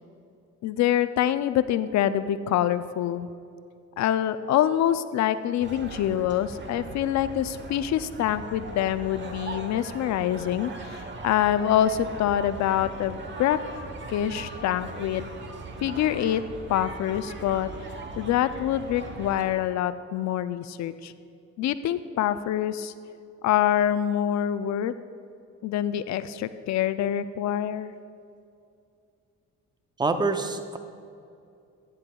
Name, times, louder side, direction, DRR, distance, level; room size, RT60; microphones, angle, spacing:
voice 1, 0.6-3.3 4.0-13.6 14.1-15.3 15.8-16.4 16.7-17.7 18.2-21.1 21.6-22.9 23.4-24.9 25.6-27.9, left 11 dB, 65° left, 13 dB, 0.4 m, -25 dB
sound 1, 5.6-19.4, right 3 dB, 40° right, 1.0 m, -39 dB
voice 2, 30.0-30.8, right 3 dB, 15° right, 7 dB, 0.6 m, -26 dB
10.5 x 10.0 x 2.3 m, 2.5 s
cardioid pair, 90°, 30 cm